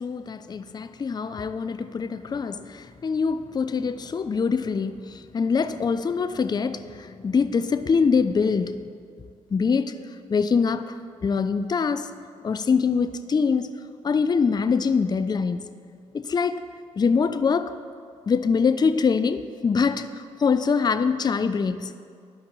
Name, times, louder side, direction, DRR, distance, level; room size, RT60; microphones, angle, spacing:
voice 1, 0.0-8.9 9.5-9.9 10.3-11.0 11.2-12.1 12.4-13.7 14.0-15.6 16.1-16.7 17.0-17.7 18.3-22.0, left 5 dB, 30° left, 11 dB, 0.4 m, -24 dB
12.0 x 5.0 x 3.0 m, 2.2 s
hypercardioid pair, 45°, 15 cm